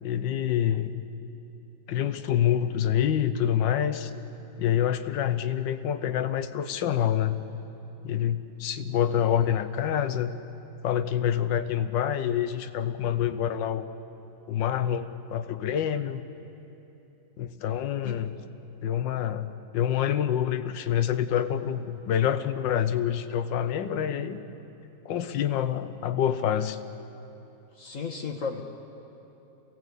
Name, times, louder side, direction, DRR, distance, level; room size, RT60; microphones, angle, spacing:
voice 1, 0.0-0.9 1.9-4.1 4.6-7.4 8.0-10.4 10.8-13.9 14.5-16.2 17.4-18.3 18.8-24.4 25.0-26.8, left 9 dB, 75° left, 11 dB, 1.6 m, -27 dB
voice 2, 27.8-28.6, left 5 dB, 45° left, 2 dB, 1.6 m, -34 dB
27.0 x 17.0 x 8.3 m, 3.0 s
omnidirectional pair, 2.1 m